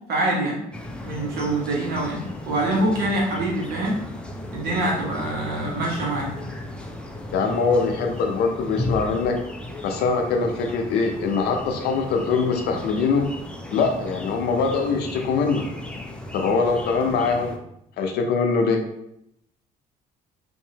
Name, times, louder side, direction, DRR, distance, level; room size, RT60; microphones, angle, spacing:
voice 1, 0.1-0.6 1.0-4.0 4.5-6.3, right 1 dB, 70° right, -3 dB, 1.1 m, -25 dB
sound 1, 0.7-17.6, left 1 dB, 5° left, 0.3 m, -35 dB
voice 2, 7.3-9.4 9.8-13.3 13.7-15.6 16.3-17.6 18.0-18.8, left 4 dB, 75° left, 4 dB, 0.5 m, -23 dB
2.8 x 2.6 x 2.7 m, 0.78 s
cardioid pair, 110°, 17 cm